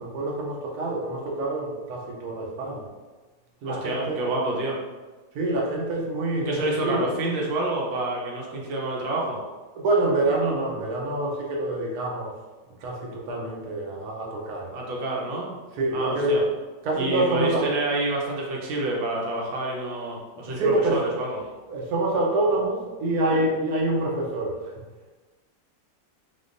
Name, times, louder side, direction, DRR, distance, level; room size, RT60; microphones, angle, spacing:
voice 1, 0.0-2.8 3.6-4.2 5.3-7.1 9.7-12.3 12.8-14.7 15.8-16.4 16.8-17.7 20.5-21.0 21.7-24.7, right 2 dB, 60° right, -2 dB, 1.2 m, -26 dB
voice 2, 3.6-4.8 6.5-9.4 14.7-15.6 15.9-16.4 16.9-21.4, right 2 dB, 85° right, -2 dB, 1.6 m, -28 dB
4.2 x 3.7 x 2.6 m, 1.3 s
omnidirectional pair, 2.0 m